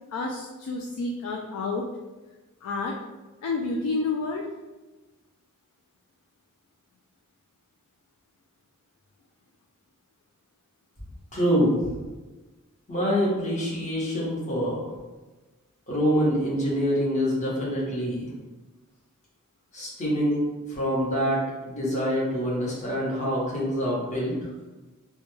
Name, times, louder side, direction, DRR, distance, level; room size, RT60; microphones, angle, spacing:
voice 1, 0.1-1.8 2.6-2.9 3.4-4.5, left 3 dB, 80° left, 1 dB, 0.3 m, -29 dB
voice 2, 11.3-11.9 12.9-14.9 15.9-18.3 19.7-20.4 20.7-24.5, equal, 35° left, -6 dB, 0.8 m, -25 dB
2.2 x 2.1 x 3.0 m, 1.2 s
head